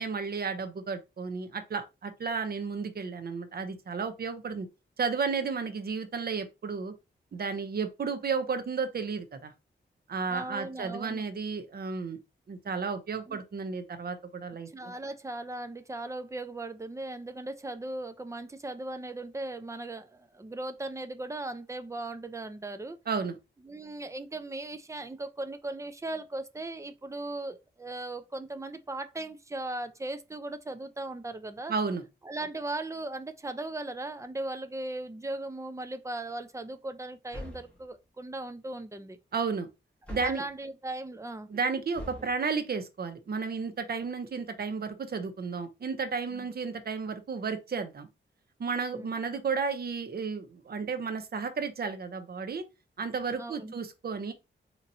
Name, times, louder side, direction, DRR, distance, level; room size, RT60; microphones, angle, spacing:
voice 1, 0.0-4.7 5.0-6.9 7.3-9.5 10.1-12.2 12.5-14.9 23.1-23.4 31.7-32.0 39.3-39.7 40.1-40.4 41.5-48.1 48.6-52.6 53.0-54.3, right 5 dB, 55° right, 0.7 m, -33 dB
voice 2, 10.3-11.3 13.3-13.4 14.7-23.0 23.6-31.7 32.2-39.2 40.2-41.5 46.3-46.5 48.9-49.1 53.3-53.7, right 2 dB, 15° right, 0.5 m, -38 dB
sound 1, 37.3-37.8 40.0-40.5 41.9-42.3, left 1 dB, 5° left, 1.4 m, -42 dB
4.0 x 2.9 x 2.6 m
wide cardioid pair, 115°, 20 cm